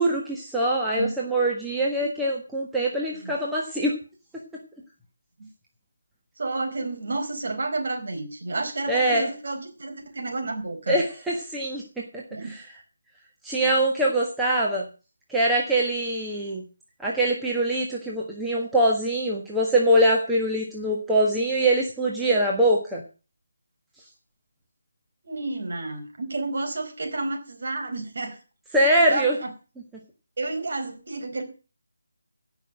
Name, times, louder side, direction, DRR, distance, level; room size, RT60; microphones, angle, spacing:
voice 1, 0.0-3.9 8.9-9.3 10.9-12.6 13.4-14.9 15.3-16.6 17.0-23.0 28.7-29.4, right 1 dB, 5° right, -4 dB, 1.5 m, -23 dB
voice 2, 6.4-11.0 12.3-12.6 25.2-28.4 29.1-29.5 30.4-31.4, right 2 dB, 50° right, 4 dB, 4.3 m, -31 dB
17.0 x 6.0 x 7.6 m, 0.35 s
figure-of-eight pair, 155°, 0 cm